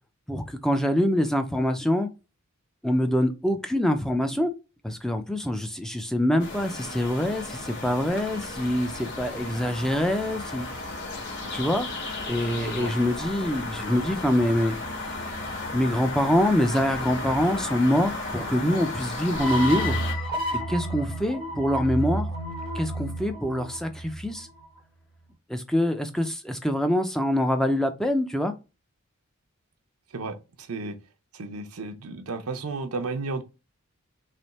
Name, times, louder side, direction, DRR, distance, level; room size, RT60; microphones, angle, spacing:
voice 1, 0.3-2.1 2.8-4.5 4.8-10.7 11.5-11.9 12.3-14.7 15.7-20.0 20.5-22.3 22.7-24.5 25.5-28.5, left 1 dB, ahead, 0.4 m, -25 dB
sound 1, 6.4-20.1, left 2 dB, 50° left, 1.4 m, -34 dB
voice 2, 12.6-12.9 30.1-30.4 30.7-31.0 31.3-33.4, right 3 dB, 85° right, 0.7 m, -33 dB
sound 2, 19.4-24.6, right 1 dB, 25° left, 0.9 m, -31 dB
3.4 x 3.1 x 4.1 m
head